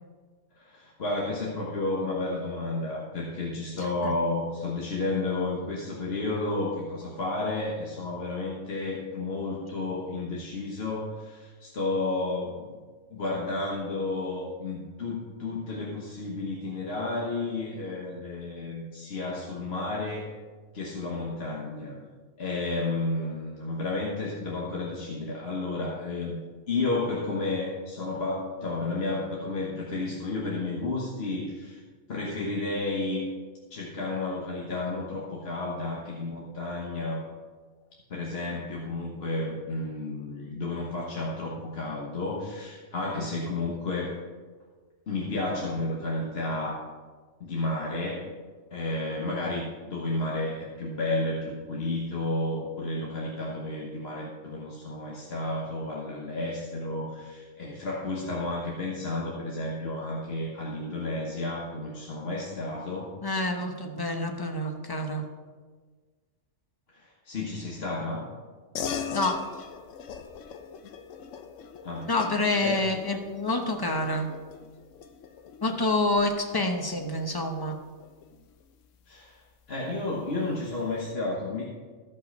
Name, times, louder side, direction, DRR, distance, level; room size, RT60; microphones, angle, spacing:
voice 1, 0.5-12.8 13.1-20.3 20.7-22.0 22.4-26.4 26.7-31.8 32.1-33.3 33.7-37.3 38.1-44.2 45.1-46.9 47.4-48.3 48.7-63.1 66.9-68.3 71.8-72.1 72.6-72.8 79.1-79.4 79.7-81.6, left 2 dB, 55° left, -3 dB, 1.4 m, -32 dB
voice 2, 63.2-65.2 69.1-69.4 72.1-74.3 75.6-77.8, left 2 dB, 20° left, 5 dB, 0.8 m, -27 dB
sound 1, 68.7-78.6, left 6 dB, 85° left, 1.0 m, -40 dB
14.0 x 5.6 x 5.2 m, 1.5 s
omnidirectional pair, 1.3 m